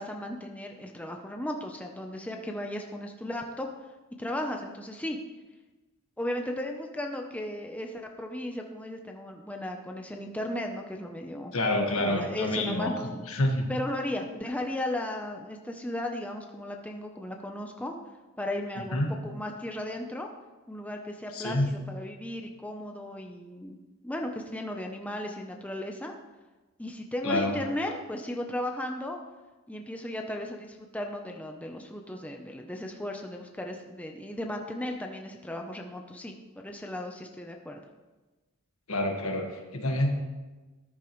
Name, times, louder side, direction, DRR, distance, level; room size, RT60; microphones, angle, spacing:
voice 1, 0.0-3.7 4.2-5.2 6.2-11.5 11.9-13.3 13.7-18.0 18.4-20.3 20.7-23.8 24.0-26.1 26.8-29.2 29.7-37.8, left 1 dB, 5° left, 2 dB, 0.7 m, -35 dB
voice 2, 11.5-12.9 13.3-13.6 18.9-19.1 21.3-21.7 27.2-27.6 38.9-40.1, left 1 dB, 70° left, 3 dB, 1.7 m, -27 dB
13.5 x 10.0 x 3.2 m, 1.2 s
head